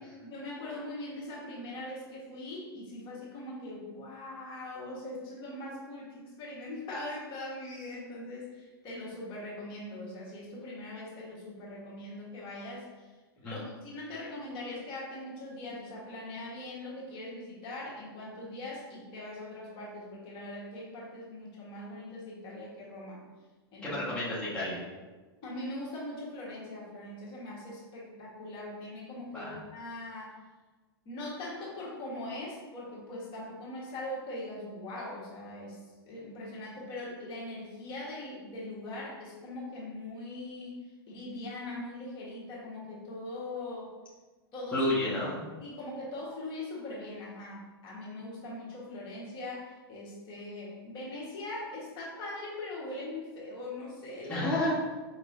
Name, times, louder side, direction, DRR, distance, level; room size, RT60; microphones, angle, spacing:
voice 1, 0.0-13.1 13.4-23.2 23.7-24.0 25.4-30.4 31.0-43.9 44.5-44.9 45.1-45.3 45.6-54.5, left 1 dB, 40° left, -5 dB, 1.3 m, -41 dB
voice 2, 23.8-24.8 29.3-29.6 44.7-45.4 54.3-54.8, left 1 dB, 10° left, -9 dB, 1.1 m, -30 dB
4.8 x 2.9 x 2.6 m, 1.3 s
hypercardioid pair, 115°, 13 cm